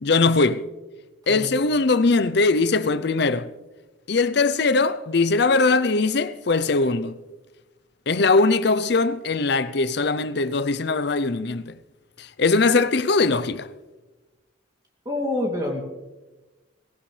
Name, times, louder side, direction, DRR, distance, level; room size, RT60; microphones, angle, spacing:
voice 1, 0.0-0.6 1.3-3.5 4.1-7.1 8.1-11.7 12.2-13.7, left 3 dB, 55° left, 0.6 m, -21 dB
voice 2, 15.0-15.8, left 1 dB, 20° right, 2.7 m, -26 dB
18.0 x 17.5 x 3.3 m
head